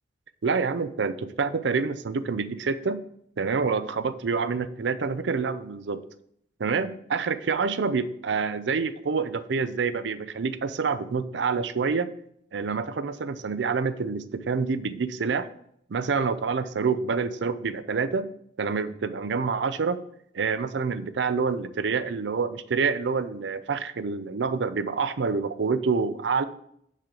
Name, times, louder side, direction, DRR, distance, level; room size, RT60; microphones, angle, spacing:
voice 1, 0.4-3.0 3.4-6.0 6.6-12.1 12.5-15.5 15.9-18.3 18.6-20.0 20.3-26.4, right 5 dB, 90° right, 14 dB, 0.5 m, -27 dB
7.3 x 6.6 x 3.8 m, 0.71 s
head